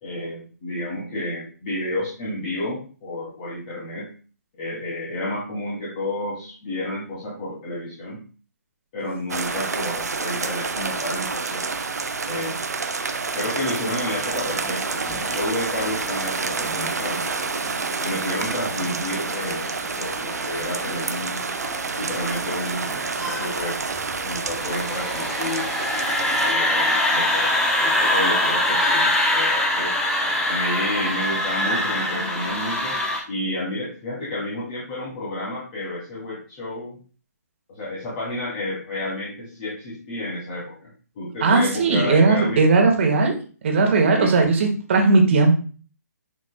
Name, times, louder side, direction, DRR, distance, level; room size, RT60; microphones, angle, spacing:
voice 1, 0.0-4.0 4.6-8.2 8.9-11.7 12.2-12.6 13.3-17.4 18.0-21.4 22.0-23.7 24.2-25.7 26.4-29.9 30.5-33.0 33.3-37.0 37.7-40.9 41.1-42.6 44.0-44.3, left 1 dB, 30° left, -7 dB, 2.7 m, -30 dB
sound 1, 9.3-26.5, right 4 dB, 65° right, 0.8 m, -28 dB
sound 2, 14.3-33.2, left 1 dB, 5° left, 1.0 m, -25 dB
voice 2, 41.4-43.3 43.6-45.6, right 3 dB, 45° right, 2 dB, 1.7 m, -17 dB
10.5 x 5.1 x 2.2 m, 0.38 s
figure-of-eight pair, 135°, 9 cm